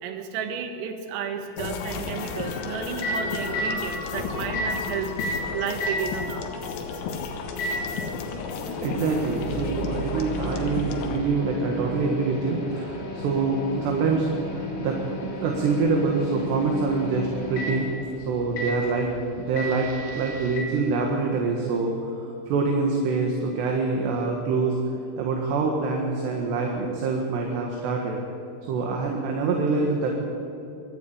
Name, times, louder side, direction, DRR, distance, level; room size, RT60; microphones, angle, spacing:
voice 1, 0.0-5.1 5.5-6.5, right 7 dB, 85° right, 6 dB, 4.2 m, -32 dB
sound 1, 1.6-11.2, left 4 dB, 85° left, 4.2 m, -33 dB
Microwave oven, 2.6-20.6, left 1 dB, 40° left, 3.7 m, -34 dB
voice 2, 8.8-17.9 18.3-19.1 19.4-24.8 25.2-28.2 28.7-30.1, right 4 dB, 65° right, 1 dB, 3.5 m, -25 dB
23.5 x 13.5 x 8.8 m, 2.8 s
omnidirectional pair, 5.8 m